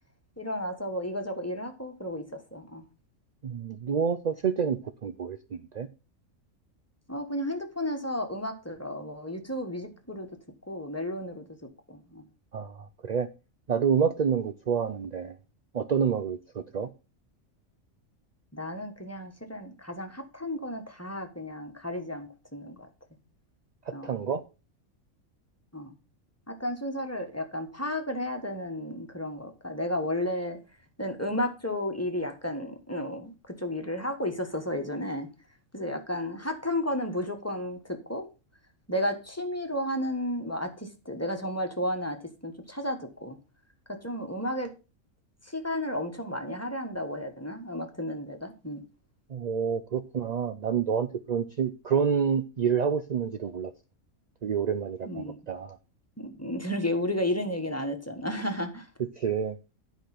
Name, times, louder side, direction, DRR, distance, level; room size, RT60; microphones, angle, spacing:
voice 1, 0.4-2.8 7.1-10.3 10.7-11.4 11.9-12.2 18.5-22.9 23.9-24.2 25.7-25.9 26.5-30.6 31.0-35.3 35.7-38.3 38.9-42.2 42.4-43.4 43.9-44.7 45.4-48.8 55.1-55.4 56.2-58.9, left 1 dB, 10° left, 1.3 m, -33 dB
voice 2, 3.4-5.9 12.5-13.3 13.7-15.4 15.7-16.9 23.9-24.4 49.3-53.7 54.4-55.8 59.2-59.6, right 7 dB, 60° right, 0.4 m, -28 dB
10.5 x 5.1 x 5.9 m
omnidirectional pair, 1.4 m